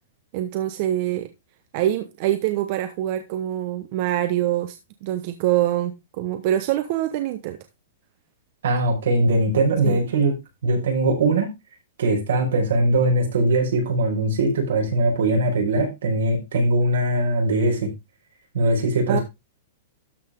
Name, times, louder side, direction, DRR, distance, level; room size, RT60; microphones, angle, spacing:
voice 1, 0.3-1.3 1.7-7.6 9.8-10.0 19.1-19.2, right 13 dB, 45° right, 1.1 m, -25 dB
voice 2, 8.6-10.3 10.6-11.5 12.0-17.9 18.5-19.2, right 2 dB, 85° right, 5.5 m, -21 dB
13.0 x 5.9 x 3.8 m
hypercardioid pair, 150°, 0 cm